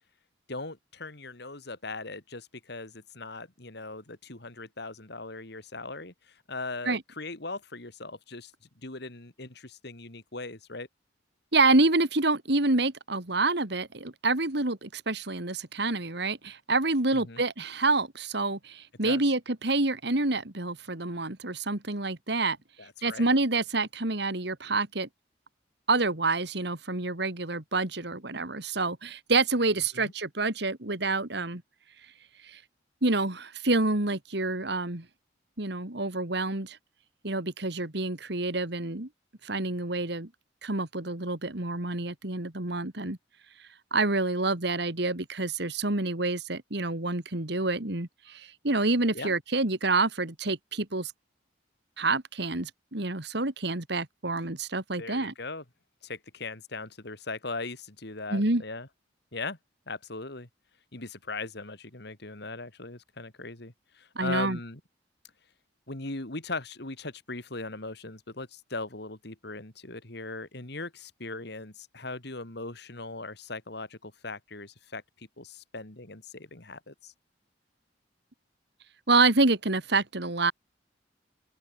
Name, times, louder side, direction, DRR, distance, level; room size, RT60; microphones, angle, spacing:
voice 1, 0.5-8.5 8.8-10.9 17.1-17.4 19.0-19.2 22.8-23.3 29.9-30.1 49.1-49.4 54.9-55.6 56.0-58.9 59.3-59.6 59.9-60.5 60.9-64.8 65.9-77.1, left 3 dB, 60° left, 2.8 m, -39 dB
voice 2, 11.5-22.6 23.0-25.1 25.9-31.6 32.4-32.6 33.0-35.1 35.6-36.8 37.2-39.1 39.4-40.3 40.6-43.2 43.9-51.1 52.0-55.3 58.3-58.6 64.2-64.6 79.1-80.5, right 3 dB, 60° right, 2.4 m, -27 dB
open air
head